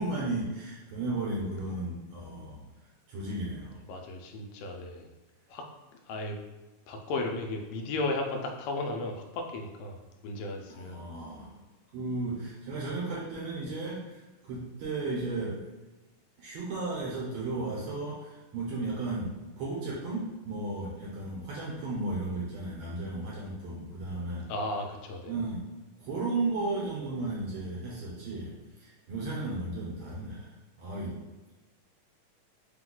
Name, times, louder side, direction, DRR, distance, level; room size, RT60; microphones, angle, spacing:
voice 1, 0.0-2.7 3.1-3.8 10.7-11.6 11.9-15.6 16.4-24.5 25.3-25.6 26.0-31.3, right 2 dB, 70° right, -5 dB, 1.8 m, -34 dB
voice 2, 3.9-5.1 5.5-5.7 6.1-6.4 6.9-11.0 24.5-25.3, left 2 dB, 85° left, 2 dB, 2.2 m, -35 dB
5.2 x 2.3 x 3.7 m, 1.1 s
omnidirectional pair, 3.8 m